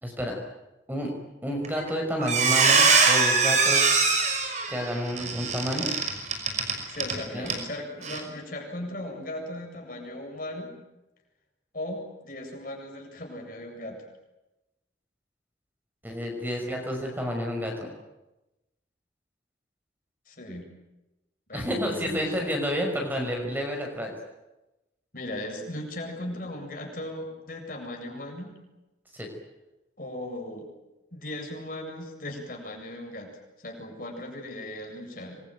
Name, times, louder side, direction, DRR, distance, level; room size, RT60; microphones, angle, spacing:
voice 1, 0.0-0.4 0.9-1.1 1.4-4.0 4.7-5.9 7.3-7.5 16.0-17.9 21.5-24.1 29.1-29.3, equal, 10° right, 2 dB, 5.7 m, -30 dB
Squeak, 1.6-1.9 2.2-7.2 7.5-7.6 8.0-8.2, right 4 dB, 40° right, 5.8 m, -22 dB
voice 2, 6.9-10.7 11.7-14.0 20.3-20.7 21.5-22.4 25.1-28.6 30.0-30.7 31.1-33.3 33.6-35.4, left 1 dB, 45° left, 2 dB, 7.7 m, -37 dB
27.5 x 23.5 x 9.2 m, 0.99 s
head